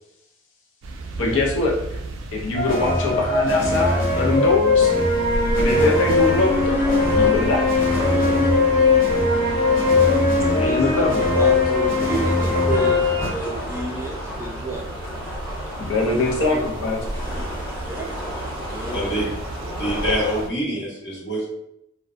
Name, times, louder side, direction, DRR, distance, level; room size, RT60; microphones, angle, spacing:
sound 1, 0.8-20.5, right 1 dB, 90° right, 0.3 m, -33 dB
voice 1, 1.2-2.0 2.3-4.9 5.5-6.9 7.1-7.8 10.5-11.2 15.8-17.0, left 2 dB, 85° left, -2 dB, 0.5 m, -23 dB
sound 2, 2.5-13.3, left 3 dB, 45° left, 0.7 m, -19 dB
sound 3, 5.7-20.4, left 1 dB, 20° left, 1.3 m, -34 dB
voice 2, 10.6-14.8 16.4-16.6 17.8-18.2 18.7-19.0, right 2 dB, 15° right, -1 dB, 0.3 m, -31 dB
voice 3, 18.9-19.4 19.7-21.5, equal, 60° left, -6 dB, 1.1 m, -25 dB
2.5 x 2.1 x 2.4 m, 0.77 s
head